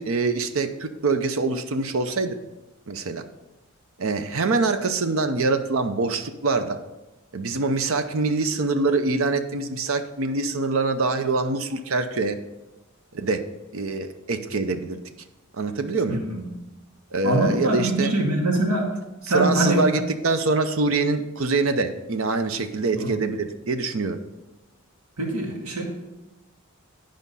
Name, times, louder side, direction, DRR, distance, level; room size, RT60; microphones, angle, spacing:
voice 1, 0.0-2.3 2.9-3.2 4.0-6.8 7.3-12.4 13.1-13.4 13.7-15.0 15.6-16.2 17.1-18.1 19.3-24.2, right 3 dB, 65° right, 8 dB, 0.7 m, -24 dB
voice 2, 16.1-16.5 17.2-18.9 19.2-19.9 22.9-23.1 25.2-25.8, right 1 dB, 85° right, 0 dB, 2.2 m, -23 dB
10.5 x 5.2 x 5.5 m, 1.1 s
head